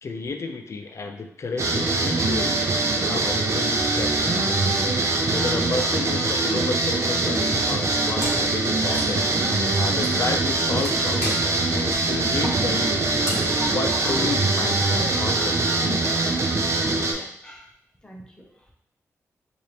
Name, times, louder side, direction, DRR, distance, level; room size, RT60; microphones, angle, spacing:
voice 1, 0.0-4.5 4.8-13.3 13.6-15.8, left 3 dB, 55° left, 5 dB, 0.4 m, -32 dB
sound 1, 1.6-17.1, right 2 dB, 55° right, 0.6 m, -23 dB
voice 2, 4.6-5.3 16.7-17.7 18.0-18.7, equal, 15° left, -1 dB, 0.8 m, -48 dB
Wood, 8.2-8.6 8.8-14.4, equal, 35° right, 1.6 m, -35 dB
4.2 x 2.5 x 3.3 m, 0.71 s
wide cardioid pair, 90°, 6 cm